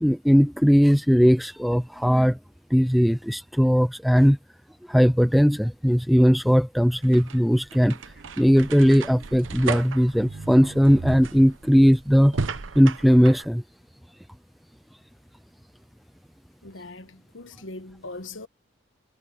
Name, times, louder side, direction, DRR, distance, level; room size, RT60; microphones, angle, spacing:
voice 1, 0.0-2.4 2.7-4.4 4.9-8.0 8.4-12.4 12.7-13.6, equal, ahead, 0.4 m, -19 dB
sound 1, 6.8-13.5, right 4 dB, 90° right, 0.9 m, -35 dB
voice 2, 16.6-18.5, left 2 dB, 85° left, 1.3 m, -40 dB
head